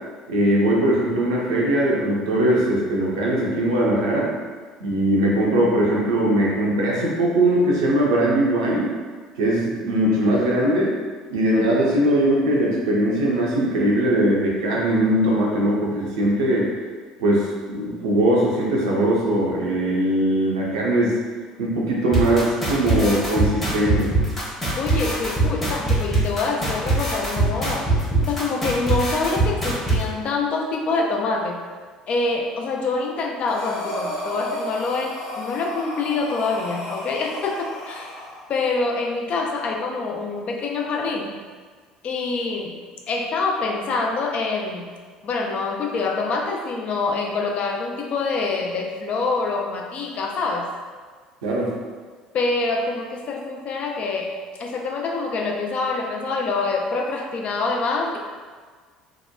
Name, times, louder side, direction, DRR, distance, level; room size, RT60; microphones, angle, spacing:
voice 1, 0.3-4.3 4.8-8.9 9.4-10.9 11.3-16.7 17.2-21.2 21.6-24.1 51.4-51.7, right 1 dB, 70° right, -4 dB, 0.5 m, -20 dB
sound 1, 22.1-30.0, right 2 dB, 10° left, 0.8 m, -21 dB
voice 2, 24.8-27.9 28.3-31.6 32.1-38.1 38.5-41.4 42.0-42.8 43.1-44.9 45.2-50.7 52.3-54.3 54.6-58.2, left 3 dB, 45° left, 1 dB, 0.4 m, -25 dB
Breathing, 33.5-38.4, left 1 dB, 60° left, 0.8 m, -33 dB
2.8 x 2.1 x 2.2 m, 1.5 s
figure-of-eight pair, 60°, 3 cm